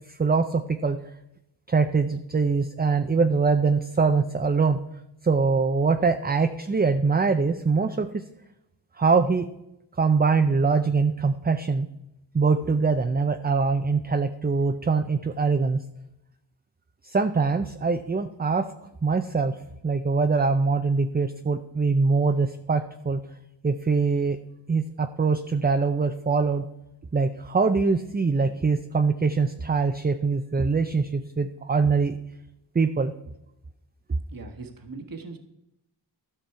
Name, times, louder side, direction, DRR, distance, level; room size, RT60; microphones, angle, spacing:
voice 1, 0.1-1.0 1.7-4.8 5.2-8.2 9.0-9.5 10.0-11.9 12.3-15.8 17.0-18.7 19.0-19.6 19.8-23.2 23.6-24.4 24.7-26.7 27.1-32.2 32.7-33.1, right 4 dB, 20° right, 7 dB, 0.5 m, -23 dB
voice 2, 34.3-35.4, right 3 dB, 50° right, 6 dB, 1.3 m, -39 dB
13.0 x 6.0 x 4.7 m, 0.86 s
cardioid pair, 60°, 44 cm